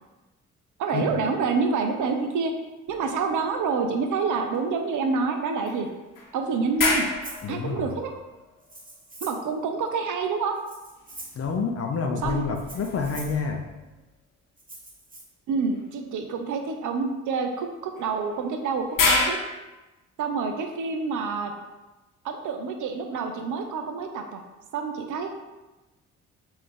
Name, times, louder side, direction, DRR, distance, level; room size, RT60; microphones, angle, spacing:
voice 1, 0.8-2.5 2.9-5.9 6.3-7.1 7.5-8.1 9.2-10.6 12.2-12.4 15.5-19.4 20.2-21.5 22.2-24.4 24.7-25.3, right 4 dB, 50° right, 5 dB, 0.5 m, -27 dB
sound 1, 2.9-4.2 4.5-4.6 5.7-9.1 10.9-14.0 15.7-15.9 18.0-19.3, left 3 dB, 55° left, 0.9 m, -31 dB
Rattle (instrument), 7.2-7.5 8.6-9.5 10.5-11.5 12.5-13.4 14.6-15.2, right 2 dB, 20° right, 1.1 m, -43 dB
voice 2, 7.4-7.9 11.3-13.6, left 5 dB, 40° left, 3 dB, 0.6 m, -28 dB
3.8 x 2.6 x 3.4 m, 1.1 s
hypercardioid pair, 45°, 40 cm